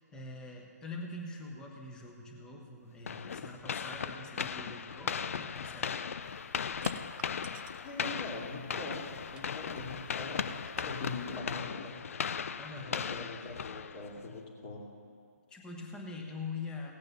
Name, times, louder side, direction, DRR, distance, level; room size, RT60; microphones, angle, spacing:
voice 1, 0.1-6.0 12.6-13.6 15.5-16.9, left 3 dB, 10° left, 1 dB, 1.2 m, -44 dB
sound 1, 3.1-14.3, left 7 dB, 50° left, 0.4 m, -37 dB
sound 2, 6.2-11.4, right 10 dB, 10° right, 0.3 m, -55 dB
voice 2, 7.8-12.0 12.8-14.9, left 3 dB, 30° left, -1 dB, 2.4 m, -42 dB
17.0 x 8.6 x 5.5 m, 2.3 s
figure-of-eight pair, 145°, 9 cm